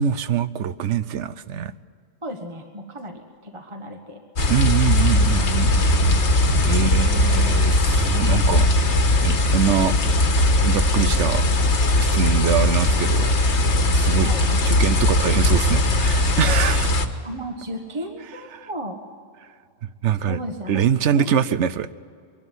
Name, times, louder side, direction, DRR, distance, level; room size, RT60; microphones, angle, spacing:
voice 1, 0.0-1.7 4.5-5.9 6.6-8.7 9.2-9.9 10.6-11.4 12.0-13.4 13.9-14.3 14.7-17.0 18.5-18.7 20.0-20.4 20.7-21.9, right 8 dB, 75° right, 1.0 m, -23 dB
voice 2, 2.2-4.2 6.2-6.3 6.7-7.0 14.2-14.6 17.2-19.0 20.2-20.8 21.1-21.2, right 1 dB, 25° right, 1.4 m, -34 dB
sound 1, 4.4-17.1, left 2 dB, 65° left, 1.6 m, -19 dB
23.0 x 12.0 x 9.9 m
omnidirectional pair, 1.3 m